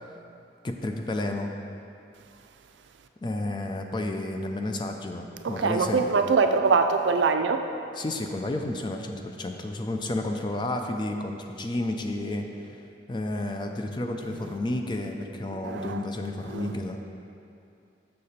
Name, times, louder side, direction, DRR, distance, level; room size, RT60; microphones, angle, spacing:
voice 1, 0.6-1.5 3.2-6.0 8.0-12.5 13.1-17.0, left 2 dB, 25° left, 4 dB, 0.4 m, -31 dB
voice 2, 5.4-7.6 14.3-14.4 15.5-16.0 16.5-17.0, right 4 dB, 80° right, 6 dB, 0.4 m, -24 dB
6.7 x 6.6 x 4.2 m, 2.6 s
head